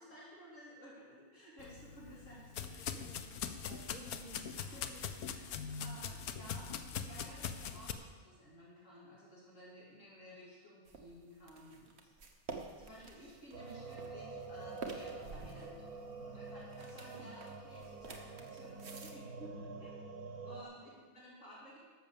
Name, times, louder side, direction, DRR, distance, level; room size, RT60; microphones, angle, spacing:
voice 1, 0.0-3.0 4.6-12.1 12.8-15.8 16.2-19.9 20.4-21.8, equal, 55° left, -6 dB, 3.0 m, -55 dB
sound 1, 1.6-7.9, left 7 dB, 80° left, 1.2 m, -42 dB
voice 2, 2.8-4.6 16.1-16.4 20.4-20.7, right 2 dB, 70° right, -1 dB, 2.0 m, -55 dB
sound 2, 10.9-19.1, right 4 dB, 50° right, 1.4 m, -50 dB
sound 3, 13.5-20.6, right 3 dB, 85° right, 1.7 m, -47 dB
12.0 x 6.8 x 7.2 m, 1.4 s
omnidirectional pair, 1.5 m